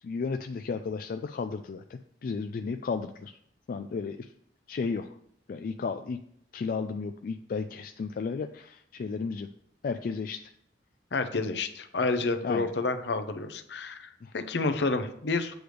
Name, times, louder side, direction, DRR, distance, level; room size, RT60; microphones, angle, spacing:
voice 1, 0.0-3.4 3.7-4.3 4.7-5.1 5.5-6.2 6.5-9.5 9.8-10.4 12.4-12.7 14.2-14.3, left 5 dB, 50° left, 7 dB, 0.3 m, -33 dB
voice 2, 11.1-15.5, left 3 dB, 70° left, 9 dB, 0.7 m, -29 dB
7.8 x 3.4 x 6.4 m, 0.68 s
head